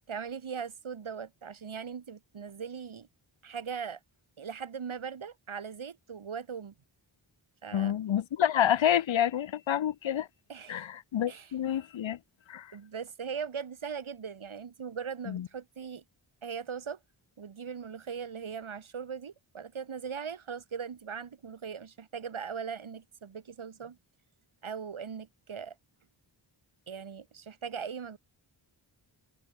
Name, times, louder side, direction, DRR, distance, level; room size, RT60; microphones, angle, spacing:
voice 1, 0.1-3.1 3.4-4.0 4.4-6.7 7.6-7.9 10.5-10.9 11.3-11.5 12.7-16.0 16.4-17.0 17.4-24.0 24.6-25.8 26.9-28.2, right 6 dB, 80° right, 3.6 m, -39 dB
voice 2, 7.7-10.3 10.7-12.2 12.5-12.7 15.3-15.5, left 10 dB, 70° left, 0.8 m, -28 dB
wide cardioid pair, 100°, 48 cm